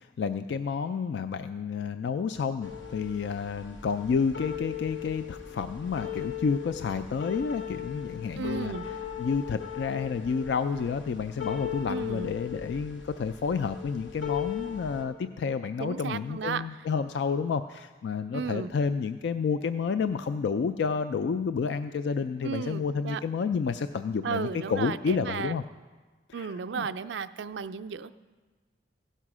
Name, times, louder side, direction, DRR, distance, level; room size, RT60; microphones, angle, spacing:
voice 1, 0.0-8.7 9.2-25.6 26.3-26.9, left 5 dB, 65° left, 10 dB, 0.3 m, -30 dB
sound 1, 2.6-15.0, left 9 dB, 85° left, 1.1 m, -38 dB
voice 2, 8.4-8.8 11.9-12.3 15.8-16.6 18.3-18.7 22.4-23.2 24.2-25.5 26.3-28.1, right 6 dB, 70° right, 10 dB, 0.4 m, -34 dB
16.0 x 5.5 x 6.1 m, 1.4 s
head